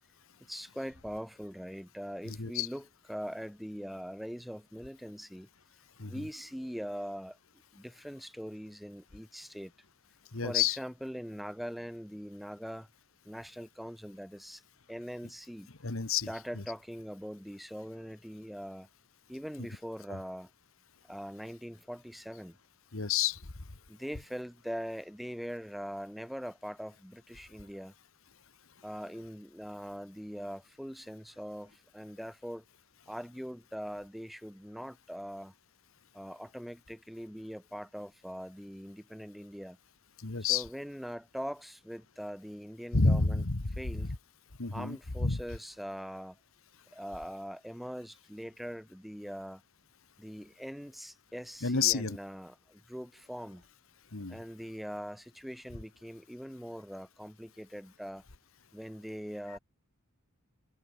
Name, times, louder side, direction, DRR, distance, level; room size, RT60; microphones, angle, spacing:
voice 1, 0.4-5.5 6.1-7.4 7.7-9.7 10.4-12.9 13.2-14.6 14.9-15.7 16.3-18.9 19.3-20.5 21.1-22.6 23.9-27.9 28.8-32.6 33.1-35.5 36.1-39.8 40.5-43.4 43.8-44.1 44.7-46.4 46.9-49.6 50.2-53.6 54.3-58.2 58.7-59.6, equal, ahead, 3.5 m, -42 dB
voice 2, 2.3-2.7 6.0-6.2 10.3-10.8 15.8-16.3 16.5-16.6 19.6-19.7 20.1-20.2 22.9-23.4 40.2-40.6 42.9-44.1 44.6-45.4 51.6-52.2 54.1-54.4, left 5 dB, 70° left, 1.6 m, -30 dB
head